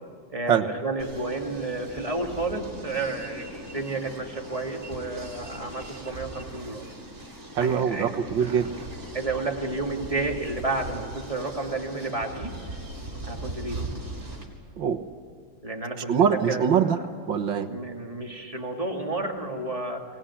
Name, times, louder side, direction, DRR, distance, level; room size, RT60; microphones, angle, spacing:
voice 1, 0.3-6.8 7.6-8.1 8.5-8.6 9.1-12.5 13.2-13.9 15.6-16.1 16.5-16.7 17.7-20.1, right 2 dB, 15° right, 1 dB, 2.5 m, -31 dB
sound 1, 1.0-14.5, right 1 dB, 35° right, 4.3 m, -39 dB
voice 2, 7.6-8.7 14.8-15.0 16.1-17.0 17.3-17.7, right 7 dB, 75° right, 6 dB, 2.0 m, -23 dB
24.0 x 19.5 x 9.9 m, 2.1 s
omnidirectional pair, 2.1 m